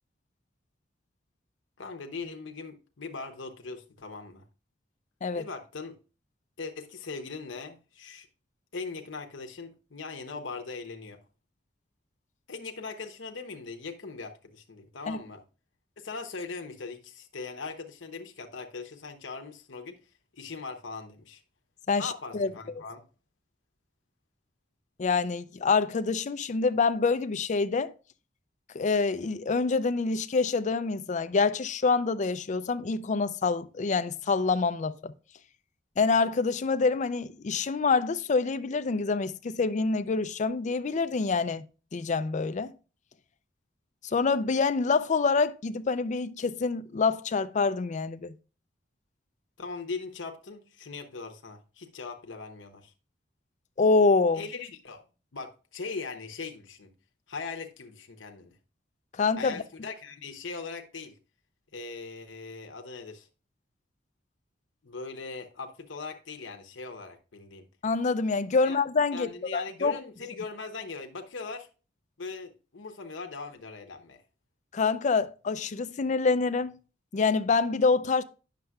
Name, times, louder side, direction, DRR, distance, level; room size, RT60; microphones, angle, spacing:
voice 1, 1.8-4.4 5.3-6.0 6.6-8.3 8.7-11.2 12.5-15.4 16.0-20.0 20.3-21.4 22.0-23.1 49.6-52.9 54.3-55.0 55.3-56.9 57.3-58.5 59.4-61.2 61.7-63.3 64.8-67.6 68.6-68.8 69.1-71.7 72.2-74.2, left 4 dB, 80° left, 0.9 m, -40 dB
voice 2, 21.9-22.5 25.0-27.9 28.7-35.1 36.0-41.6 41.9-42.7 44.0-48.4 53.8-54.4 59.1-59.6 67.8-69.9 74.7-76.8 77.1-78.2, left 4 dB, 40° left, 0.4 m, -26 dB
9.4 x 6.6 x 2.3 m
head